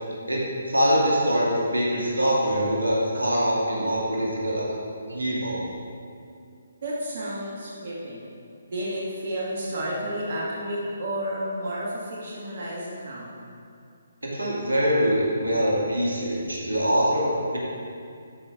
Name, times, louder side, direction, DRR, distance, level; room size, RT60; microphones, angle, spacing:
voice 1, 0.7-4.7 5.1-5.7 14.2-17.6, equal, 85° right, -5 dB, 2.2 m, -24 dB
voice 2, 6.8-8.3 8.6-13.3, equal, 55° right, -5 dB, 1.8 m, -31 dB
12.5 x 5.3 x 4.1 m, 2.4 s
figure-of-eight pair, 140°, 0 cm